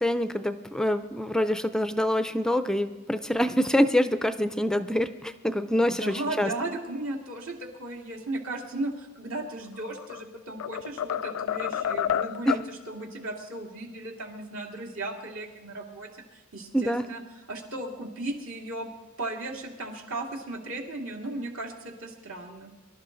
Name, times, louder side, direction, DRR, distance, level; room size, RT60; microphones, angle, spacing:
voice 1, 0.0-6.5 12.5-12.6 16.7-17.1, equal, 5° left, 10 dB, 0.4 m, -25 dB
voice 2, 5.8-17.2 17.5-18.9 19.2-22.7, right 2 dB, 70° right, 0 dB, 2.4 m, -36 dB
sound 1, 9.7-10.2 10.6-12.7, left 9 dB, 85° left, 0.4 m, -29 dB
23.5 x 12.0 x 3.9 m, 1.1 s
head